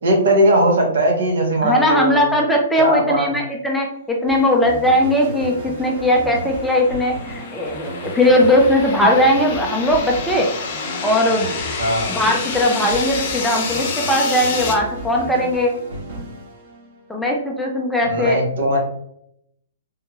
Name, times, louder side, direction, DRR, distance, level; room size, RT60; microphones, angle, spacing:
voice 1, 0.0-2.2 2.8-3.3 11.8-12.1 18.0-18.8, right 1 dB, 70° right, 1 dB, 1.1 m, -18 dB
voice 2, 1.6-10.5 11.0-11.6 12.1-15.7 17.1-18.4, left 1 dB, 5° left, -1 dB, 0.4 m, -18 dB
sound 1, 4.3-17.2, equal, 50° right, 1.3 m, -34 dB
sound 2, 5.8-14.7, left 5 dB, 35° left, 0.8 m, -29 dB
3.5 x 3.0 x 2.3 m, 0.74 s
hypercardioid pair, 165°, 0 cm